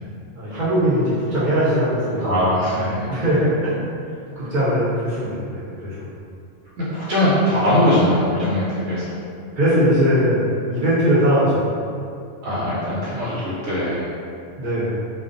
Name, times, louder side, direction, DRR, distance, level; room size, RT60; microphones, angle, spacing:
voice 1, 0.3-2.4 3.1-3.7 4.4-6.1 9.5-11.7 14.6-15.0, equal, 50° right, -11 dB, 0.6 m, -20 dB
voice 2, 2.2-3.1 6.8-9.2 12.4-14.2, left 1 dB, 85° right, -10 dB, 1.0 m, -21 dB
2.3 x 2.2 x 2.5 m, 2.4 s
omnidirectional pair, 1.3 m